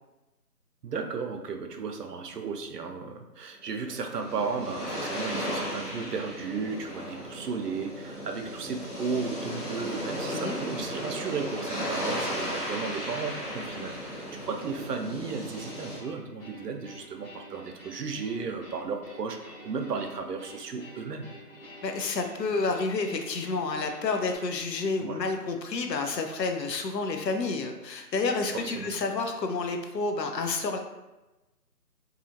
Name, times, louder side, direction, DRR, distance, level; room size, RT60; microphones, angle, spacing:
voice 1, 0.8-21.3 25.0-25.2 28.5-29.0, right 5 dB, 75° right, 4 dB, 0.5 m, -34 dB
sound 1, 3.7-16.0, equal, ahead, 0.7 m, -35 dB
sound 2, 15.6-24.4, equal, 35° left, 0.8 m, -49 dB
voice 2, 21.8-30.8, left 3 dB, 80° left, 4 dB, 0.6 m, -30 dB
2.7 x 2.4 x 2.6 m, 1.0 s
figure-of-eight pair, 170°, 49 cm